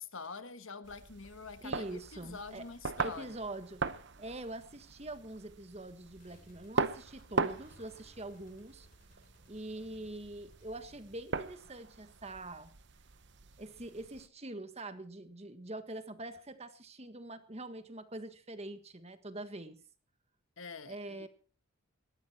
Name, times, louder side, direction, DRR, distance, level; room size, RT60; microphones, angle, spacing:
voice 1, 0.0-3.4 20.6-21.3, left 4 dB, 70° left, 1.4 m, -46 dB
sound 1, 0.8-14.3, right 4 dB, 55° right, 1.0 m, -40 dB
voice 2, 1.6-2.7 3.0-3.8 4.2-8.9 9.5-12.7 13.6-19.8 20.9-21.3, right 2 dB, 30° right, 1.6 m, -44 dB
sound 2, 6.1-11.2, left 1 dB, 40° left, 4.0 m, -64 dB
20.0 x 14.0 x 4.4 m
head